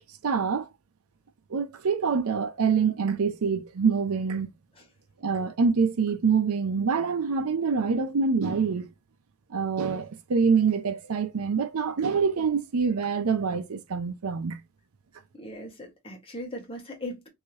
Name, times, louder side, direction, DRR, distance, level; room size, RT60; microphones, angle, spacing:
voice 1, 0.2-0.7 1.5-4.5 5.2-8.9 9.5-14.6, right 5 dB, 70° right, 0.5 m, -25 dB
voice 2, 15.4-17.3, left 1 dB, 25° left, 1.1 m, -38 dB
3.2 x 2.7 x 2.7 m
head